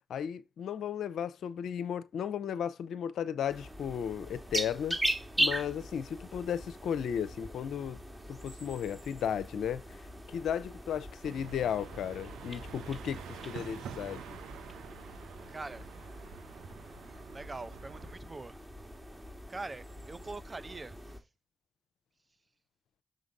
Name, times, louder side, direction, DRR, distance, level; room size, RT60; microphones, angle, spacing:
voice 1, 0.1-5.0 5.4-8.0 8.3-10.0 10.3-14.4, left 8 dB, 80° left, 0.6 m, -35 dB
sound 1, 3.5-21.2, right 1 dB, 15° right, 2.2 m, -40 dB
sound 2, 11.2-18.2, right 7 dB, 90° right, 0.7 m, -48 dB
voice 2, 15.5-15.9 17.3-18.5 19.5-20.9, right 3 dB, 35° right, 0.8 m, -43 dB
6.5 x 3.9 x 5.3 m
supercardioid pair, 40°, 0 cm